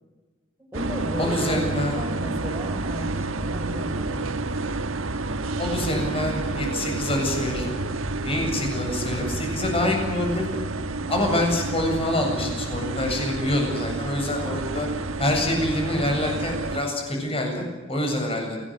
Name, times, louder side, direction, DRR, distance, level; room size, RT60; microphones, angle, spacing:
voice 1, 0.6-1.6 2.0-4.5 8.3-8.6 14.4-14.6, equal, 10° right, 1 dB, 5.1 m, -35 dB
sound 1, 0.7-16.8, right 2 dB, 85° right, 1.4 m, -29 dB
voice 2, 1.2-2.1 5.6-7.8 8.2-10.5 11.1-14.9 15.2-18.6, left 1 dB, 30° left, 2 dB, 8.0 m, -26 dB
29.5 x 18.5 x 8.0 m, 1.2 s
head